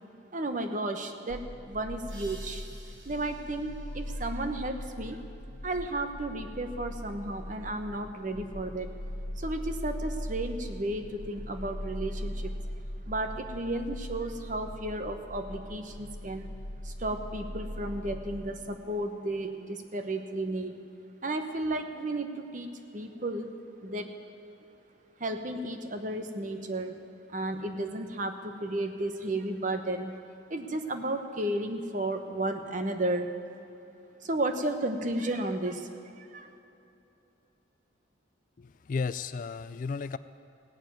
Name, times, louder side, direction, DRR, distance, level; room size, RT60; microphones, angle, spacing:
voice 1, 0.3-2.6 3.0-5.2 5.6-8.9 9.4-12.5 13.1-16.5 16.8-20.8 21.2-23.5 23.8-24.1 25.2-27.0 27.3-30.2 30.5-33.3 34.2-35.9 36.2-36.5, right 1 dB, 40° right, 7 dB, 1.0 m, -33 dB
sound 1, 1.3-18.7, equal, 90° left, 1.4 m, -40 dB
sound 2, 2.1-5.5, right 2 dB, 75° right, 2.7 m, -54 dB
voice 2, 38.6-40.2, left 4 dB, 40° left, 14 dB, 0.3 m, -34 dB
16.5 x 7.0 x 9.2 m, 2.9 s
head